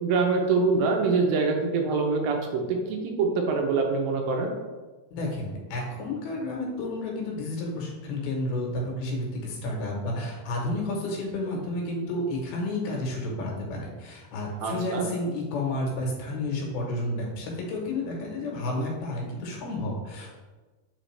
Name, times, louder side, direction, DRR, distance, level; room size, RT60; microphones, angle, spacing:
voice 1, 0.0-4.5 14.6-15.1, right 4 dB, 80° right, 3 dB, 2.5 m, -25 dB
voice 2, 5.1-20.3, left 1 dB, 90° left, -1 dB, 3.2 m, -31 dB
7.7 x 4.0 x 3.2 m, 1.3 s
omnidirectional pair, 4.2 m